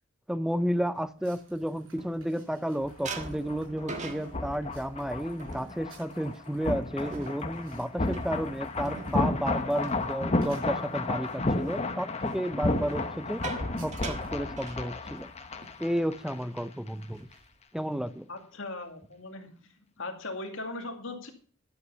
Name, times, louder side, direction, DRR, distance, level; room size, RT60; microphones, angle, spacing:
voice 1, 0.3-13.4 13.8-15.3 15.8-17.3 17.7-18.3, equal, 5° right, 0.5 m, -32 dB
sound 1, 1.2-2.6 3.0-10.9 11.2-11.6 12.7-15.3 15.6-15.8 16.1-16.4 16.9-17.6, right 3 dB, 35° right, 1.5 m, -44 dB
sound 2, 1.2-11.4 12.0-12.2 12.5-12.7 13.0-14.5, right 3 dB, 65° right, 6.0 m, -59 dB
sound 3, 2.8-16.6 16.9-17.0, left 2 dB, 30° left, 1.0 m, -33 dB
voice 2, 18.3-21.3, left 2 dB, 65° left, 2.3 m, -39 dB
11.5 x 7.9 x 5.5 m
head